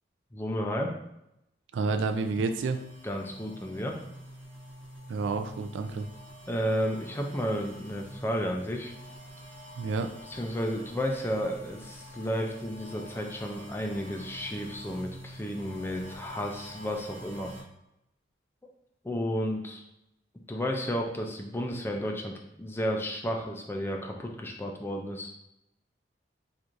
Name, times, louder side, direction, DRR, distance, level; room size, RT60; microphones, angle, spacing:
voice 1, 0.3-0.9 3.0-4.0 6.5-8.9 10.3-17.5 19.0-19.8 20.5-25.3, equal, 10° left, 1 dB, 0.3 m, -32 dB
voice 2, 1.7-2.8 5.1-6.1 9.7-10.1, right 4 dB, 75° right, 7 dB, 0.3 m, -29 dB
sound 1, 1.8-17.6, equal, 35° right, 0.9 m, -47 dB
4.4 x 2.5 x 2.5 m, 0.85 s
head